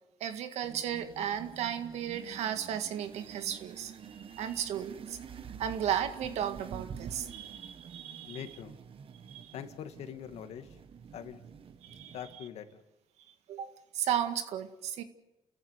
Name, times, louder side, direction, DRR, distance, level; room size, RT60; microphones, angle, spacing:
voice 1, 0.2-5.2 5.6-8.4 9.3-9.5 11.8-12.1 13.5-15.0, right 9 dB, 90° right, 9 dB, 2.0 m, -35 dB
sound 1, 0.6-12.4, right 7 dB, 55° right, 1.5 m, -48 dB
voice 2, 8.3-8.8 9.5-10.8 11.1-11.4 12.1-12.8, left 9 dB, 80° left, 8 dB, 2.1 m, -43 dB
29.5 x 14.5 x 9.7 m, 0.97 s
cardioid pair, 90°, 11 cm